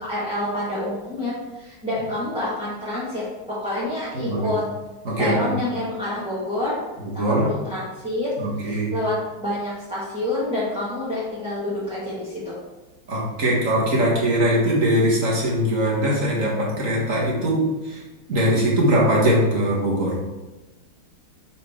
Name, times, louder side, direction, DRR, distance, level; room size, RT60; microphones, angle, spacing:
voice 1, 0.0-4.6 5.2-6.8 7.1-8.3 8.6-12.6, left 1 dB, 5° right, -10 dB, 1.2 m, -28 dB
voice 2, 4.1-4.5 5.0-5.6 7.0-7.5 8.4-8.9 13.1-18.0 18.3-20.2, equal, 40° right, -4 dB, 1.6 m, -21 dB
6.3 x 4.9 x 3.6 m, 1.1 s
omnidirectional pair, 2.3 m